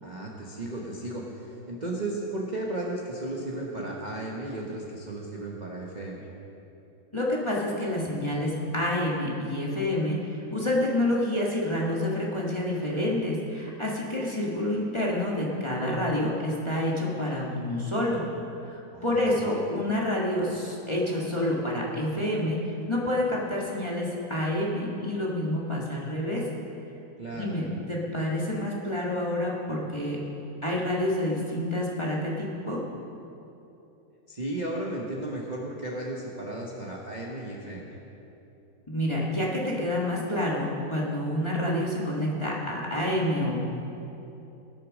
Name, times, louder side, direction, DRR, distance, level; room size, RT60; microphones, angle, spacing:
voice 1, 0.0-6.3 18.9-19.5 27.2-27.6 34.3-37.9, right 1 dB, 30° right, -2 dB, 0.9 m, -34 dB
voice 2, 7.1-18.2 18.6-26.4 27.3-30.2 30.6-32.8 38.9-43.5, left 1 dB, 15° left, -4 dB, 1.4 m, -28 dB
18.0 x 6.7 x 6.4 m, 2.9 s
omnidirectional pair, 2.2 m